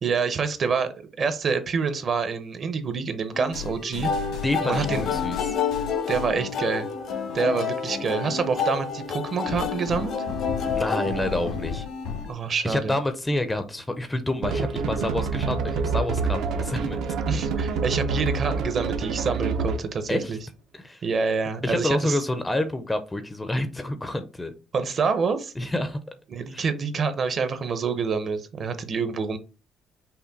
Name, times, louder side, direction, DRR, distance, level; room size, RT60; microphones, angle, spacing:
voice 1, 0.0-4.1 4.6-5.1 6.1-6.9 7.3-10.1 12.2-13.0 17.3-20.4 21.0-22.2 24.7-25.5 26.3-29.4, right 5 dB, 40° right, 10 dB, 0.7 m, -27 dB
sound 1, 3.3-12.3, left 5 dB, 80° left, 1.7 m, -35 dB
sound 2, 4.0-12.0, left 6 dB, 60° left, 1.0 m, -29 dB
voice 2, 4.4-5.5 10.7-11.8 12.6-17.0 20.1-20.4 20.7-21.0 21.6-24.5 25.6-26.0 26.5-26.6, left 1 dB, 10° left, 9 dB, 0.5 m, -28 dB
sound 3, 14.4-19.9, right 4 dB, 80° right, 0.8 m, -27 dB
5.7 x 2.2 x 4.0 m, 0.32 s
cardioid pair, 130°, 0 cm